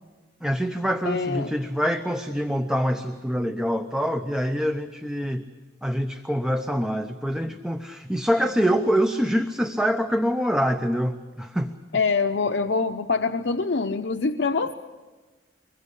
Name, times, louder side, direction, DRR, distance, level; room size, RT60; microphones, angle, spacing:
voice 1, 0.4-5.4 5.8-11.7, equal, 5° right, 6 dB, 0.8 m, -25 dB
voice 2, 1.1-1.5 11.9-14.7, left 4 dB, 75° left, 7 dB, 0.7 m, -24 dB
24.5 x 21.0 x 8.4 m, 1.3 s
head